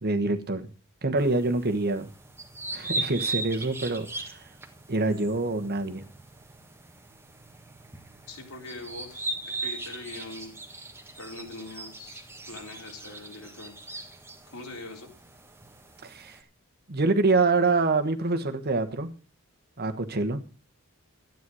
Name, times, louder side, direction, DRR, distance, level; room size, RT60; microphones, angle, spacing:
voice 1, 0.0-0.7 1.0-2.1 2.7-4.4 4.9-6.0 16.0-16.4 16.9-19.1 19.8-20.4, right 3 dB, 45° right, 7 dB, 1.4 m, -26 dB
sound 1, 1.2-16.4, right 2 dB, 10° right, 1.6 m, -39 dB
voice 2, 8.3-10.5 11.2-13.7 14.5-15.1, left 2 dB, 75° left, 2 dB, 3.8 m, -42 dB
12.5 x 9.3 x 6.3 m, 0.36 s
head